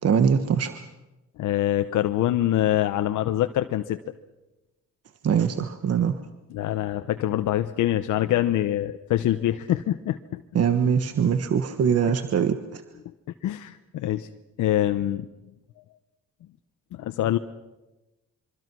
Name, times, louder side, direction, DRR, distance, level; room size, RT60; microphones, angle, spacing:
voice 1, 0.0-0.8 5.2-6.2 10.5-12.8, right 7 dB, 55° right, 10 dB, 1.4 m, -22 dB
voice 2, 1.4-4.0 6.5-10.4 13.4-14.3 14.6-15.3 16.9-17.4, left 13 dB, 80° left, 8 dB, 1.0 m, -24 dB
26.0 x 24.5 x 6.2 m, 1.0 s
cardioid pair, 90°, 30 cm